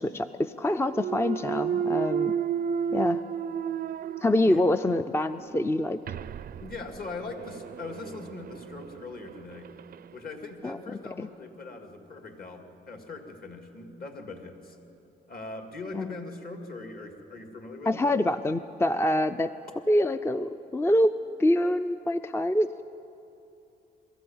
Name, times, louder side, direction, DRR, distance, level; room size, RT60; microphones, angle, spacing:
voice 1, 0.0-2.4 2.9-3.2 4.2-6.0 10.6-10.8 11.2-11.3 15.9-16.1 17.9-19.5 19.9-21.1 21.4-22.8, left 1 dB, 10° left, 11 dB, 0.4 m, -25 dB
Thump thud, 0.9-4.9 5.4-10.1, right 7 dB, 50° right, 0.5 m, -33 dB
voice 2, 6.6-9.8 10.1-14.8 15.3-18.1, left 3 dB, 50° left, 5 dB, 2.5 m, -41 dB
22.5 x 14.0 x 8.9 m, 2.8 s
cardioid pair, 90°, 20 cm